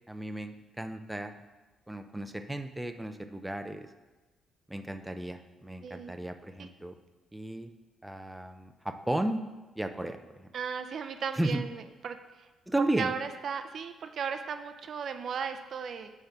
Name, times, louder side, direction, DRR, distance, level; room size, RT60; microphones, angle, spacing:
voice 1, 0.1-1.4 1.9-3.9 4.7-6.9 7.3-7.7 8.0-9.4 9.8-10.2 11.4-11.6 12.7-13.1, right 1 dB, 5° right, 7 dB, 0.5 m, -34 dB
voice 2, 5.8-6.1 6.6-6.7 10.5-12.5 13.0-16.1, right 6 dB, 55° right, 8 dB, 0.5 m, -36 dB
8.7 x 3.7 x 6.7 m, 1.2 s
cardioid pair, 90°, 0 cm